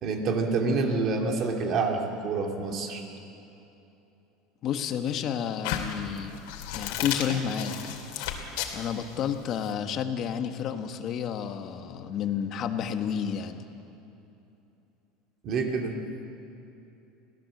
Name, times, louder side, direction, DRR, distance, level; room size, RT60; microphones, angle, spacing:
voice 1, 0.0-3.1 6.6-6.7 15.4-16.0, right 4 dB, 40° right, 2 dB, 2.6 m, -27 dB
voice 2, 4.6-6.4 6.7-7.7 8.1-8.3 8.7-13.7, left 8 dB, 40° left, 7 dB, 1.4 m, -31 dB
sound 1, 5.6-9.7, left 9 dB, 75° left, 2.8 m, -33 dB
24.5 x 16.5 x 7.9 m, 2.9 s
cardioid pair, 155°, 0 cm